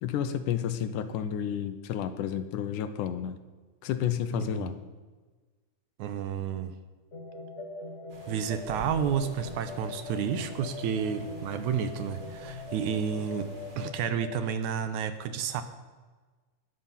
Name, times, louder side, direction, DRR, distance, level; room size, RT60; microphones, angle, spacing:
voice 1, 0.0-3.4 3.8-4.8, left 9 dB, 85° left, 10 dB, 2.3 m, -31 dB
voice 2, 4.3-4.7 6.0-6.7 8.3-13.5 13.8-15.6, right 8 dB, 75° right, 10 dB, 2.0 m, -31 dB
sound 1, 7.1-14.5, left 4 dB, 45° left, 0.9 m, -41 dB
sound 2, 8.1-13.9, right 1 dB, 35° right, 2.6 m, -49 dB
13.0 x 10.0 x 5.7 m, 1.3 s
omnidirectional pair, 3.7 m